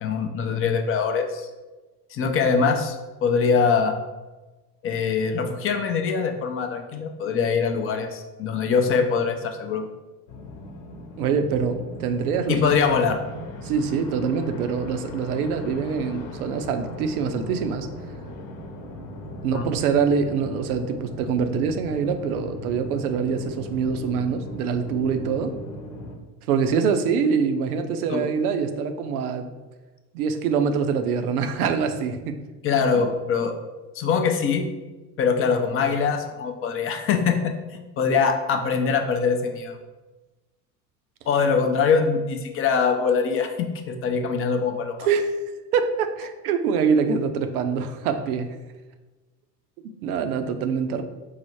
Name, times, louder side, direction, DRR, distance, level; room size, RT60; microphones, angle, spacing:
voice 1, 0.0-1.5 2.1-3.0 3.2-3.9 4.8-9.9 12.5-13.2 19.5-19.7 28.1-28.2 32.6-33.5 33.9-34.7 35.2-37.4 37.7-39.8 41.3-45.1, left 5 dB, 30° left, 4 dB, 0.5 m, -23 dB
sound 1, 10.3-26.2, left 1 dB, 55° left, 1.0 m, -38 dB
voice 2, 11.2-12.7 13.6-17.9 19.4-25.5 26.5-29.5 30.1-32.4 45.0-45.4 45.7-48.5 50.0-51.0, right 6 dB, 65° right, 7 dB, 0.6 m, -24 dB
4.7 x 2.0 x 4.4 m, 1.2 s
hypercardioid pair, 80°, 48 cm